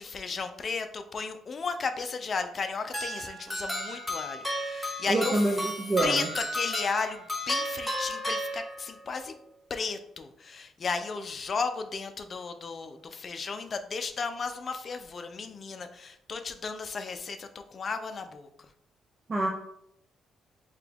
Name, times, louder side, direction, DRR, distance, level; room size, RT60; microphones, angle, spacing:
voice 1, 0.0-5.6 6.0-9.3 9.7-18.5, left 4 dB, 45° left, 8 dB, 0.4 m, -34 dB
sound 1, 2.9-9.1, equal, 5° left, 1.0 m, -34 dB
voice 2, 5.1-6.3 19.3-19.5, right 2 dB, 35° right, 2 dB, 0.5 m, -26 dB
4.8 x 2.3 x 3.4 m, 0.75 s
cardioid pair, 90°, 0 cm